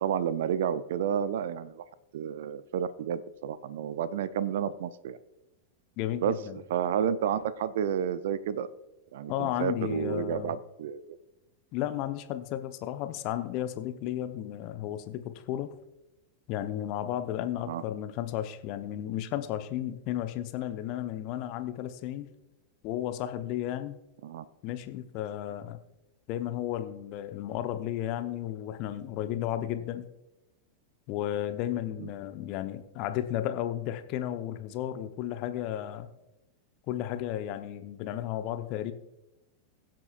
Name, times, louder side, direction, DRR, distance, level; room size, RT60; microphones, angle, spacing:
voice 1, 0.0-1.8 2.1-5.2 6.2-6.4 6.7-8.7 9.1-11.2 17.7-17.8 24.2-24.4 32.0-32.1, right 8 dB, 55° right, 16 dB, 0.5 m, -30 dB
voice 2, 6.0-6.6 9.3-10.5 11.7-15.8 16.5-22.3 22.8-24.0 24.6-25.8 26.3-30.0 31.1-36.1 36.9-38.9, left 12 dB, 40° left, 9 dB, 0.8 m, -33 dB
22.0 x 7.6 x 2.4 m, 0.93 s
figure-of-eight pair, 90°, 0 cm